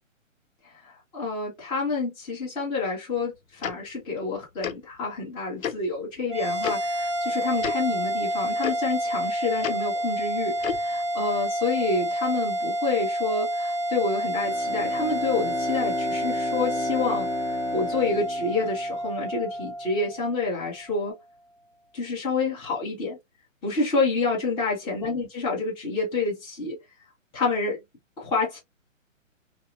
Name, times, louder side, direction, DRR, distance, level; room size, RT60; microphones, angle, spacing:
voice 1, 0.7-17.3 17.7-21.2 21.9-23.2 23.6-26.8 27.3-27.8 28.2-28.6, left 3 dB, 10° left, 0.9 m, -28 dB
Tick-tock, 3.6-3.7 4.6-4.7 5.6-5.7 6.6-6.7 7.6-7.7 8.6-8.7 9.6-9.7 10.6-10.8, left 8 dB, 85° left, 0.6 m, -29 dB
sound 1, 6.3-20.9, right 1 dB, 25° right, 0.3 m, -29 dB
Bowed string instrument, 14.4-19.6, left 4 dB, 50° left, 1.4 m, -35 dB
2.8 x 2.0 x 2.4 m
hypercardioid pair, 145°, 40 cm